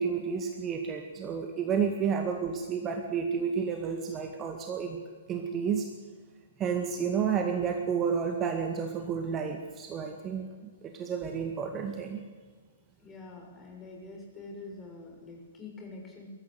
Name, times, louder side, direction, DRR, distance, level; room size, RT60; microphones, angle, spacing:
voice 1, 0.0-5.0 5.3-5.9 6.6-10.5 10.8-12.2, right 6 dB, 25° right, 4 dB, 2.0 m, -31 dB
voice 2, 13.0-16.3, left 3 dB, 20° left, 0 dB, 6.2 m, -45 dB
22.0 x 14.0 x 9.6 m, 1.5 s
figure-of-eight pair, 115°, 0 cm